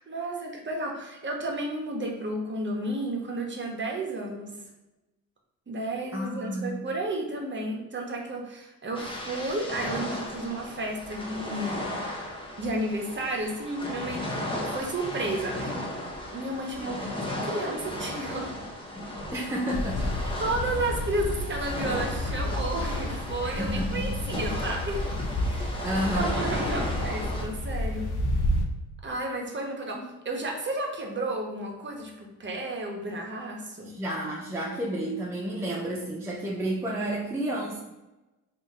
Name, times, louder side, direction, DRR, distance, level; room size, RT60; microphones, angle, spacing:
voice 1, 0.0-4.6 5.7-11.9 12.6-15.8 16.3-18.5 20.4-25.0 25.4-28.1 29.0-33.9, right 1 dB, 25° right, 0 dB, 0.8 m, -32 dB
voice 2, 6.1-6.8 19.3-20.3 23.4-24.1 25.8-26.4 33.8-37.8, right 1 dB, 5° right, -3 dB, 0.5 m, -31 dB
sound 1, 8.9-27.4, left 1 dB, 10° left, 0.9 m, -35 dB
sound 2, 19.7-28.7, left 1 dB, 45° left, 0.7 m, -31 dB
2.8 x 2.5 x 3.6 m, 1.0 s
supercardioid pair, 65°, 42 cm